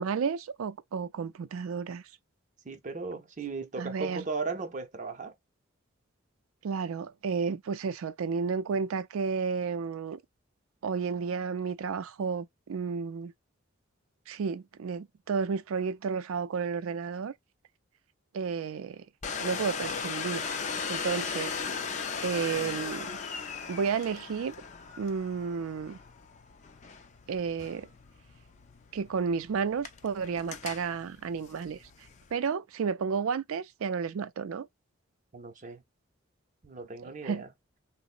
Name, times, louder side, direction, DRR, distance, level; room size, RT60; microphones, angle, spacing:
voice 1, 0.0-2.0 3.8-4.2 6.6-10.2 10.8-13.3 14.3-17.3 18.3-19.0 19.4-20.4 20.9-21.6 22.2-23.1 23.7-24.5 25.0-26.0 27.3-27.9 28.9-31.8 32.3-34.7 37.0-37.4, right 5 dB, 80° right, 0.4 m, -32 dB
voice 2, 2.6-5.3 22.4-22.8 35.3-35.8 36.6-37.5, right 4 dB, 35° right, 0.6 m, -37 dB
Domestic sounds home sounds, 19.2-32.3, left 5 dB, 35° left, 0.4 m, -38 dB
3.8 x 2.0 x 2.4 m
head